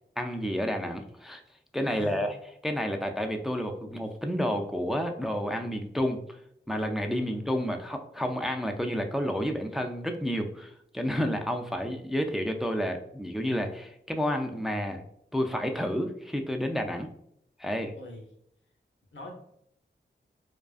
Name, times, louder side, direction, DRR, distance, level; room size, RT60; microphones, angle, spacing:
voice 1, 0.2-1.4 1.7-2.3 2.6-6.2 6.7-15.0 15.3-17.1 17.6-17.9, equal, ahead, 4 dB, 0.3 m, -30 dB
voice 2, 1.9-2.3 7.2-7.7 17.9-18.2 19.1-19.3, left 2 dB, 70° left, 0 dB, 0.7 m, -43 dB
2.4 x 2.3 x 2.3 m, 0.73 s
cardioid pair, 45°, 20 cm